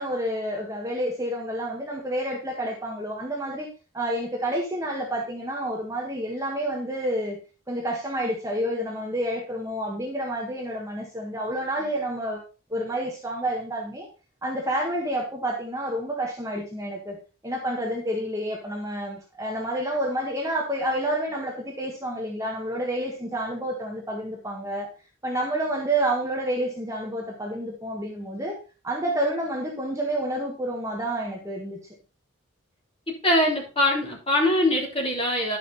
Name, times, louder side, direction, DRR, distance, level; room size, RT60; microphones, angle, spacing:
voice 1, 0.0-3.7 3.9-7.4 7.7-12.4 12.7-14.1 14.4-17.2 17.4-24.9 25.2-28.6 28.8-31.8, right 1 dB, 15° right, -1 dB, 1.5 m, -29 dB
voice 2, 33.1-35.6, left 1 dB, 25° left, -2 dB, 3.3 m, -23 dB
11.0 x 5.9 x 4.1 m, 0.32 s
head